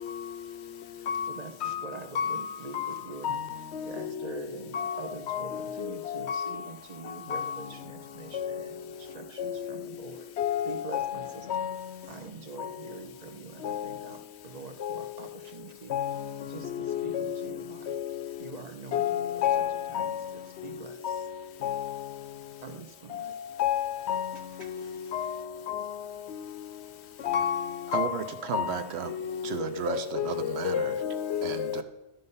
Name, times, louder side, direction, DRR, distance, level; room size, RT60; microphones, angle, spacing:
voice 1, 0.8-3.4 3.8-10.3 10.7-11.7 12.1-15.9 16.5-17.9 18.4-19.0 19.3-19.6 19.9-21.3 22.6-23.4 24.3-25.2 27.0-27.1, right 4 dB, 40° right, 0.7 m, -45 dB
voice 2, 5.3-6.5 7.3-7.5 10.4-11.1 11.5-11.7 13.6-13.8 14.8-14.9 15.9-16.1 16.9-17.3 18.9-20.1 21.0-21.2 21.6-21.8 23.6-24.3 25.1-25.3 25.7-25.8 27.2-27.6 27.9-28.1 28.5-28.7 29.9-31.8, left 9 dB, 75° left, 0.9 m, -29 dB
voice 3, 27.9-29.1 29.4-31.0 31.4-31.8, right 8 dB, 70° right, 0.9 m, -34 dB
11.5 x 5.4 x 5.4 m
omnidirectional pair, 1.2 m